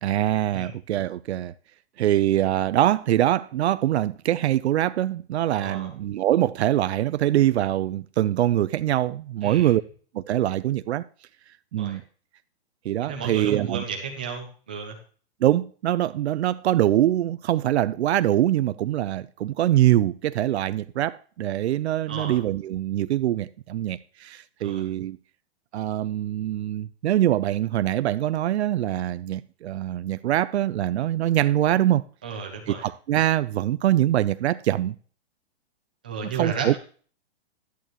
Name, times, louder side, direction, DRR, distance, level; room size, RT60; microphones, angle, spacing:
voice 1, 0.0-1.5 2.0-9.8 10.1-11.0 11.7-12.0 12.8-13.8 15.4-25.2 25.7-32.0 32.7-34.9 36.2-36.8, right 13 dB, 80° right, 0.5 m, -23 dB
voice 2, 5.5-5.9 9.4-9.7 11.8-12.0 13.1-15.0 22.1-22.4 24.6-24.8 32.2-32.9 36.0-36.8, right 5 dB, 10° right, 0.3 m, -33 dB
11.5 x 8.5 x 3.0 m
hypercardioid pair, 170°, 33 cm